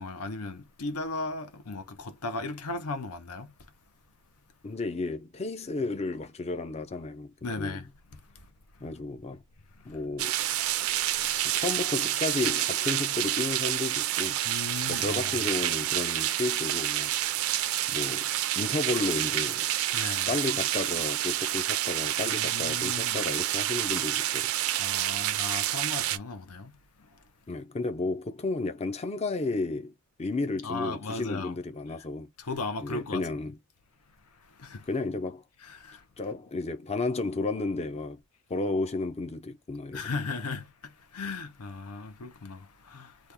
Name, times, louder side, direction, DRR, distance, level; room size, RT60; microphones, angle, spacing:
voice 1, 0.0-3.5 7.4-7.9 11.3-11.6 14.4-15.3 19.9-20.3 22.3-23.2 24.8-26.8 30.6-31.5 32.4-33.3 34.6-34.9 35.6-36.0 39.9-43.3, left 3 dB, 80° left, 0.8 m, -36 dB
voice 2, 4.6-7.8 8.8-9.4 9.9-10.3 11.5-14.4 14.9-17.1 17.9-18.3 18.6-19.7 20.3-24.5 27.5-29.9 30.2-32.3 32.8-33.6 34.9-35.4 36.2-38.2 38.5-40.0, left 3 dB, 30° left, 0.5 m, -32 dB
sound 1, 10.2-26.2, right 13 dB, 65° right, 0.4 m, -28 dB
3.0 x 2.3 x 3.4 m
head